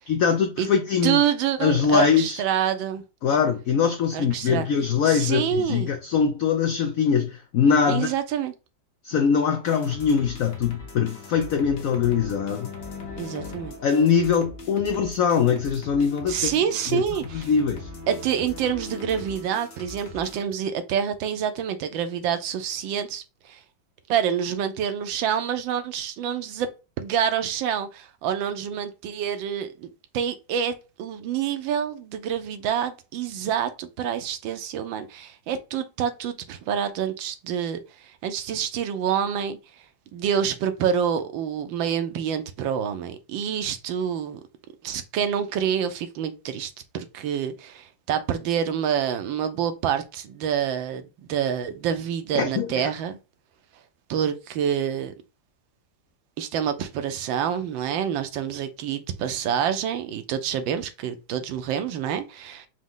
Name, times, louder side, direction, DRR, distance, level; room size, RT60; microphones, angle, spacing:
voice 1, 0.1-1.2 1.6-2.4 3.2-8.1 9.0-12.7 13.8-16.6 16.9-17.0 17.3-17.9 52.3-52.9, left 6 dB, 80° left, 0.7 m, -22 dB
voice 2, 1.0-3.0 4.1-4.7 5.1-5.9 7.9-8.5 13.2-13.7 16.3-17.5 18.1-23.6 24.1-26.7 27.0-39.6 40.1-44.4 44.8-53.2 54.1-55.1 56.4-62.7, right 8 dB, 85° right, 1.4 m, -27 dB
sound 1, 9.6-20.4, left 3 dB, 45° left, 1.0 m, -40 dB
5.1 x 2.2 x 3.7 m
omnidirectional pair, 2.0 m